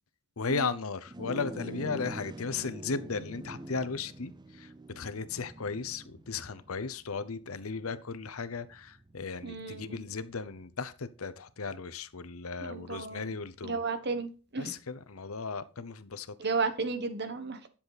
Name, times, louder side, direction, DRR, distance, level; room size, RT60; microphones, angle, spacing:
voice 1, 0.4-13.8 14.6-16.3, left 4 dB, 75° left, 0.8 m, -36 dB
sound 1, 1.1-10.6, right 2 dB, 20° right, 0.6 m, -46 dB
voice 2, 9.4-10.0 12.6-13.4 13.6-14.7 16.4-17.6, right 4 dB, 50° right, 1.3 m, -33 dB
10.5 x 7.1 x 4.1 m
head